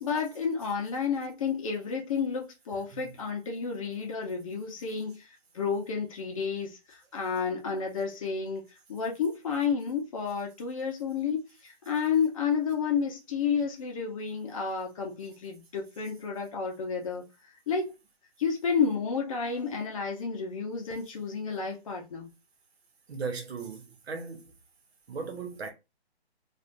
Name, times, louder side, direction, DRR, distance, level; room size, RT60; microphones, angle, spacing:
voice 1, 0.0-5.3 5.5-8.6 8.9-17.2 17.7-17.9 18.4-22.3, left 6 dB, 30° left, 0.6 m, -31 dB
voice 2, 23.1-24.5 25.1-25.7, right 4 dB, 70° right, 1.1 m, -37 dB
3.3 x 2.5 x 2.5 m
hypercardioid pair, 155°, 32 cm